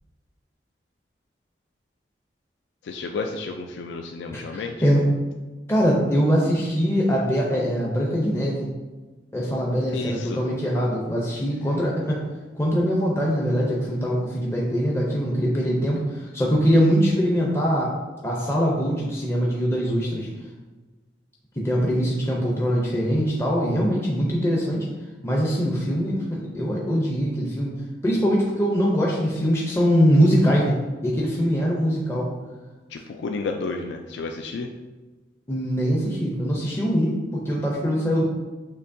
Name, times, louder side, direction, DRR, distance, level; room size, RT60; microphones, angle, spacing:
voice 1, 2.8-4.8 9.9-10.4 32.9-34.7, left 3 dB, 85° left, 4 dB, 0.3 m, -31 dB
voice 2, 4.3-5.0 5.7-8.7 9.3-12.2 12.5-17.9 18.2-20.3 21.6-24.9 25.2-27.7 28.0-30.8 31.0-32.3 35.5-38.3, equal, 15° left, -3 dB, 0.5 m, -22 dB
6.7 x 2.7 x 2.6 m, 1.3 s
head